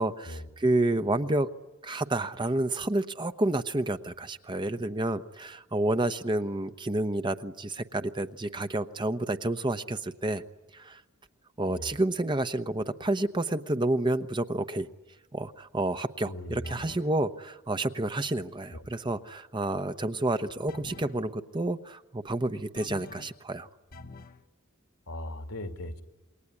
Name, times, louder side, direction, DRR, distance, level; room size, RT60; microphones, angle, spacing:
voice 1, 0.0-1.5 1.8-10.4 10.7-11.0 11.6-14.9 15.3-23.7, right 2 dB, 20° right, 10 dB, 0.9 m, -29 dB
voice 2, 16.3-16.7 18.7-18.8 25.1-26.0, left 1 dB, 80° left, 6 dB, 2.5 m, -38 dB
sound 1, 16.6-17.2 20.7-21.2 22.7-23.4 23.9-24.4, left 3 dB, 45° left, 1.2 m, -46 dB
28.0 x 21.5 x 9.7 m, 1.2 s
head